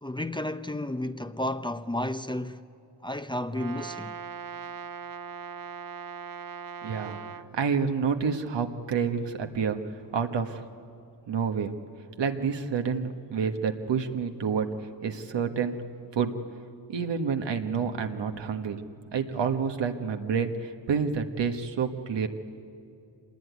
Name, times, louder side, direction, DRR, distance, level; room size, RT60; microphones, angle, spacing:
voice 1, 0.0-2.6 3.0-4.2, left 1 dB, 10° left, 0.8 m, -32 dB
Brass instrument, 3.5-7.5, right 6 dB, 50° right, 1.0 m, -40 dB
voice 2, 6.8-7.2 7.5-9.8 10.1-10.6 11.3-11.7 12.2-14.7 15.0-15.8 16.1-16.3 16.9-18.8 19.1-22.3, right 6 dB, 75° right, 1.6 m, -28 dB
25.5 x 20.0 x 9.5 m
cardioid pair, 60°, 43 cm